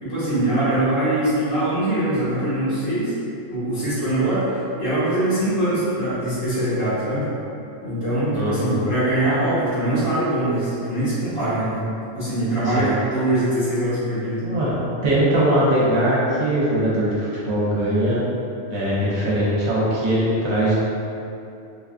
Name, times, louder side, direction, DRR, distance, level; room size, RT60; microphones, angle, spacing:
voice 1, 0.0-3.1 3.5-7.2 7.8-11.9 12.1-14.4, right 1 dB, 80° left, -12 dB, 1.8 m, -22 dB
voice 2, 8.3-8.8 12.6-12.9 14.4-14.8 15.0-18.2 18.7-20.7, right 1 dB, 60° right, -8 dB, 0.9 m, -21 dB
3.7 x 2.3 x 2.4 m, 2.7 s
omnidirectional pair, 1.4 m